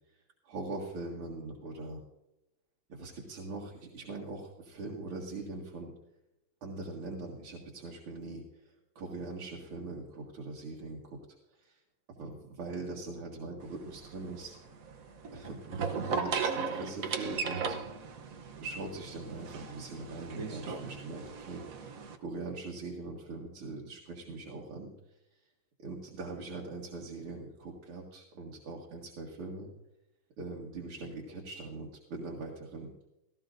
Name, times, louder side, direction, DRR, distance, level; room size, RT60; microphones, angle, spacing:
voice 1, 0.4-2.0 2.9-5.9 6.6-11.2 11.5-11.8 12.2-14.6 15.3-17.8 18.6-21.9 22.2-24.9 25.8-29.7 30.4-32.9, right 3 dB, 85° right, -3 dB, 2.7 m, -42 dB
sound 1, 13.6-22.2, right 5 dB, 55° right, 1.0 m, -37 dB
17.5 x 14.5 x 2.6 m, 0.90 s
omnidirectional pair, 2.3 m